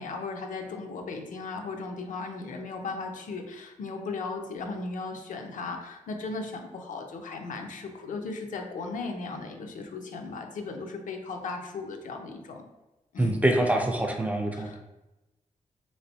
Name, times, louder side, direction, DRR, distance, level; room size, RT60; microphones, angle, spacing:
voice 1, 0.0-12.6 13.1-13.7 14.5-14.8, left 3 dB, 85° left, 4 dB, 0.5 m, -36 dB
voice 2, 13.2-14.8, right 1 dB, 10° right, 3 dB, 0.3 m, -25 dB
3.3 x 3.2 x 2.7 m, 1.0 s
wide cardioid pair, 165°, 13 cm